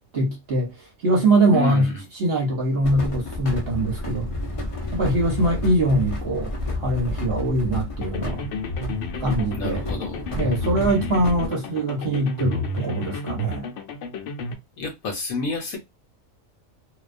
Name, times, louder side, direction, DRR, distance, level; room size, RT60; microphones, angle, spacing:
voice 1, 0.1-0.7 1.0-1.9 2.1-4.3 4.9-6.5 6.8-8.4 9.2-9.8 10.4-13.7, right 1 dB, 50° right, 0.9 m, -22 dB
voice 2, 1.5-2.0 9.5-10.3 14.8-15.8, left 3 dB, 80° left, 1.1 m, -29 dB
sound 1, 2.8-11.5, left 2 dB, 50° left, 0.4 m, -31 dB
sound 2, 8.0-14.5, left 3 dB, 65° left, 0.9 m, -32 dB
2.3 x 2.2 x 2.4 m
omnidirectional pair, 1.5 m